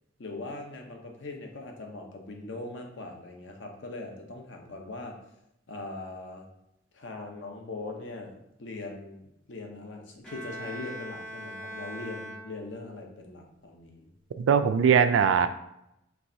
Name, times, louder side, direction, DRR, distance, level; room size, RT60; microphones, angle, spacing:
voice 1, 0.2-5.2 5.7-6.5 6.9-14.1, left 2 dB, 70° left, 2 dB, 0.7 m, -41 dB
Bowed string instrument, 10.2-13.0, equal, 5° left, 0.6 m, -41 dB
voice 2, 14.4-15.5, right 7 dB, 80° right, 10 dB, 0.3 m, -21 dB
4.7 x 3.2 x 2.7 m, 0.83 s
head